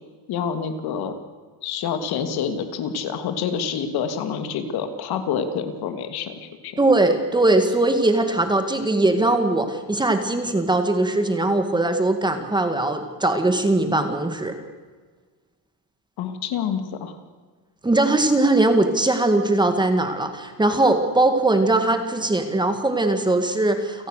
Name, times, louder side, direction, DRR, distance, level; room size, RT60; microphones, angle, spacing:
voice 1, 0.3-1.1 1.6-6.8 16.2-17.2, left 7 dB, 60° left, 8 dB, 2.8 m, -27 dB
voice 2, 6.8-14.6 17.8-24.1, right 2 dB, 10° right, 7 dB, 2.0 m, -20 dB
29.5 x 18.0 x 6.7 m, 1.5 s
cardioid pair, 150°, 43 cm